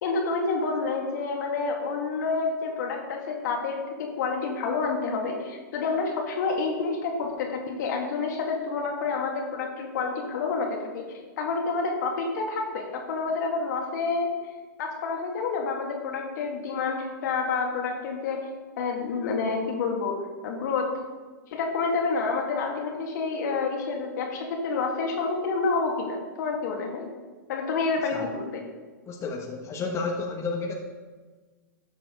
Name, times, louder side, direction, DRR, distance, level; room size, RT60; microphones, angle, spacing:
voice 1, 0.0-11.1 11.4-14.3 14.8-18.5 18.8-21.0 21.5-27.1 27.5-28.6, left 4 dB, 65° left, 1 dB, 2.1 m, -28 dB
voice 2, 29.1-30.7, left 4 dB, 25° left, 0 dB, 1.5 m, -31 dB
12.0 x 7.5 x 3.9 m, 1.3 s
hypercardioid pair, 105°, 11 cm